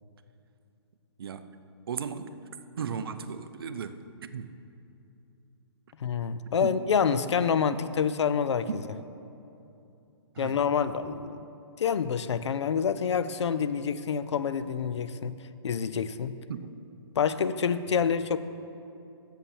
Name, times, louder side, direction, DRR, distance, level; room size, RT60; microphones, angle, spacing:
voice 1, 1.2-1.6 1.9-2.5 2.8-4.6 6.6-6.8 7.7-7.8 8.7-8.8 10.3-10.7 16.5-16.7 17.9-18.1, right 6 dB, 55° right, 11 dB, 0.5 m, -36 dB
voice 2, 6.0-8.7 10.4-11.5 11.8-15.4 15.6-16.3 17.2-18.4, left 7 dB, 90° left, 13 dB, 0.5 m, -27 dB
7.3 x 7.0 x 7.2 m, 2.8 s
hypercardioid pair, 170°, 14 cm